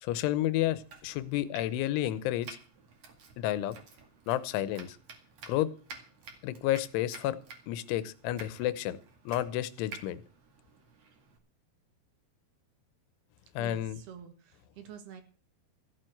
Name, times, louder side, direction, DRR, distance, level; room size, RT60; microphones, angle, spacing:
voice 1, 0.0-2.6 3.4-3.8 4.3-5.0 5.5-5.7 6.4-7.4 7.7-9.0 9.3-10.2 13.6-14.0, left 13 dB, 90° left, 16 dB, 3.3 m, -31 dB
Domestic sounds home sounds, 0.7-11.4, right 4 dB, 45° right, 2.5 m, -52 dB
voice 2, 13.6-15.2, right 8 dB, 65° right, 8 dB, 3.4 m, -48 dB
15.0 x 7.7 x 7.9 m, 0.41 s
omnidirectional pair, 5.3 m